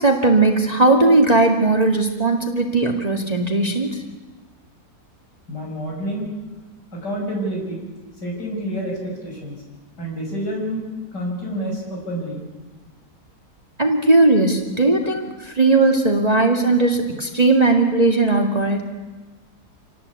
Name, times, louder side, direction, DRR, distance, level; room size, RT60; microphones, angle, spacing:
voice 1, 0.0-4.0 13.8-18.8, right 2 dB, 25° right, 1 dB, 2.2 m, -17 dB
voice 2, 5.5-6.3 6.9-7.9 8.2-9.6 10.0-10.8 11.1-12.4, equal, 85° left, -1 dB, 7.1 m, -28 dB
27.5 x 18.5 x 8.4 m, 1.2 s
omnidirectional pair, 1.8 m